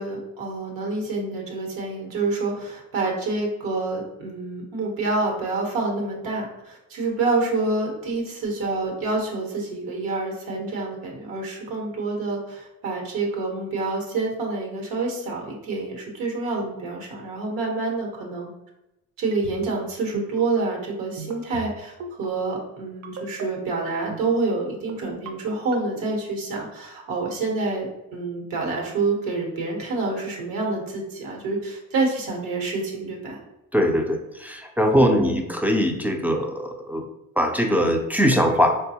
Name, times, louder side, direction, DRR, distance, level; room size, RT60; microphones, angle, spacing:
voice 1, 0.0-18.5 19.2-33.4 35.0-35.4, right 3 dB, 90° right, 0 dB, 1.0 m, -27 dB
sound 1, 19.3-19.8 20.1-20.4 21.2-21.7 22.0-22.3 23.0-23.4 23.9-24.2 24.9-25.3 25.7-26.1, right 5 dB, 55° right, 0.6 m, -36 dB
voice 2, 33.7-37.0 37.4-38.8, equal, 5° right, 2 dB, 0.3 m, -21 dB
3.9 x 2.2 x 2.7 m, 0.90 s
cardioid pair, 110°, 34 cm